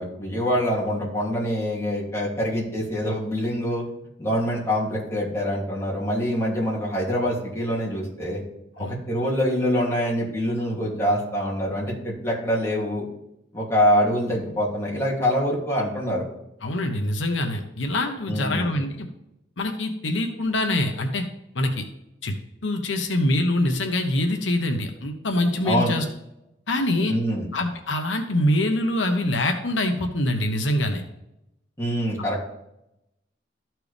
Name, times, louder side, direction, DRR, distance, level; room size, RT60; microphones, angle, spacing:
voice 1, 0.0-3.8 4.2-8.4 8.8-13.1 13.5-16.2 18.3-18.7 25.6-25.9 27.1-27.5 31.8-32.5, equal, 15° left, -6 dB, 2.7 m, -25 dB
voice 2, 16.6-19.1 19.6-21.2 21.5-21.8 22.2-22.3 22.6-26.0 26.7-27.1 27.5-31.0, left 1 dB, 85° left, 4 dB, 1.0 m, -24 dB
13.5 x 4.6 x 3.4 m, 0.86 s
head